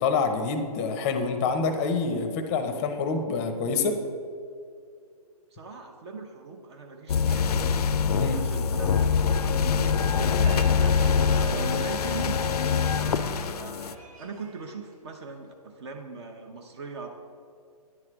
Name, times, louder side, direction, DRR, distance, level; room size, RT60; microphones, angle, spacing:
voice 1, 0.0-4.0 8.2-8.4, left 4 dB, 25° left, 7 dB, 0.6 m, -26 dB
voice 2, 5.5-7.8 8.1-12.4 12.9-17.1, right 4 dB, 45° right, 3 dB, 0.7 m, -40 dB
sound 1, 7.1-13.9, left 6 dB, 80° left, 0.4 m, -24 dB
Crowd, 10.1-15.5, right 3 dB, 65° right, 1.4 m, -45 dB
9.5 x 3.2 x 6.0 m, 2.2 s
hypercardioid pair, 145°, 20 cm